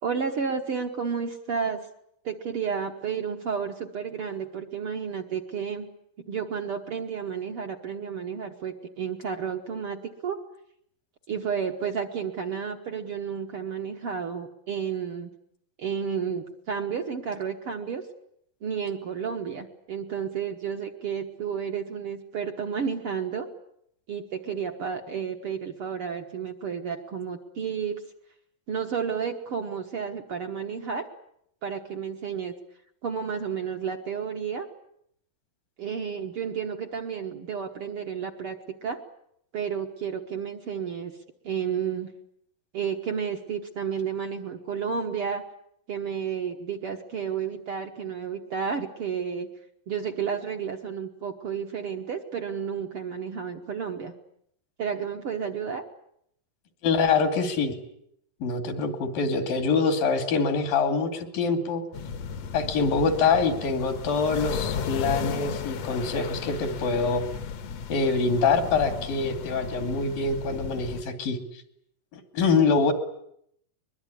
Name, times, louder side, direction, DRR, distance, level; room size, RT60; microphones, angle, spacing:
voice 1, 0.0-1.9 2.2-5.9 6.3-10.4 11.3-15.3 15.8-18.0 18.6-23.5 24.1-28.0 28.7-31.1 31.6-32.5 33.0-34.7 35.8-39.0 39.5-41.1 41.4-42.1 42.7-45.4 45.9-49.5 49.9-54.1 54.8-55.8, right 7 dB, 55° right, 4 dB, 1.8 m, -31 dB
voice 2, 56.8-57.8 58.4-61.8 62.5-67.2 67.9-71.4 72.1-72.9, left 4 dB, 80° left, 7 dB, 4.3 m, -25 dB
sound 1, 61.9-71.0, left 6 dB, 60° left, 2.0 m, -34 dB
23.0 x 22.0 x 9.9 m, 0.73 s
omnidirectional pair, 3.9 m